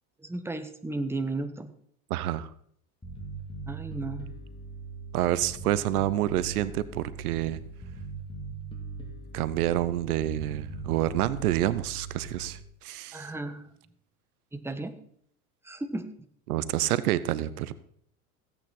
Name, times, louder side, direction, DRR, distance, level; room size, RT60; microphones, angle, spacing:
voice 1, 0.2-1.7 3.7-4.3 13.1-13.7 14.5-14.9 15.6-16.0, right 2 dB, 5° right, 7 dB, 1.3 m, -34 dB
voice 2, 2.1-2.5 5.1-7.6 9.3-13.3 16.5-17.7, right 13 dB, 80° right, 16 dB, 0.8 m, -28 dB
Bass guitar, 3.0-12.6, right 4 dB, 10° left, 3.0 m, -40 dB
16.0 x 8.9 x 4.3 m, 0.63 s
hypercardioid pair, 90°, 44 cm